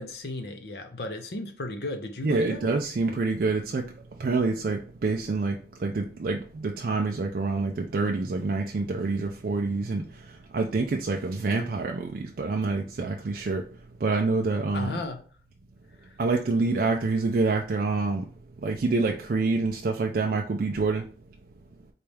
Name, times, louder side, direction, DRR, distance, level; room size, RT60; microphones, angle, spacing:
voice 1, 0.0-2.7 14.7-15.2 16.0-16.2, left 2 dB, 60° left, 0.6 m, -35 dB
voice 2, 2.2-3.9 4.2-13.6 14.0-14.9 16.2-18.3 18.6-21.0, right 3 dB, 55° right, 0.4 m, -27 dB
4.0 x 2.3 x 3.2 m
head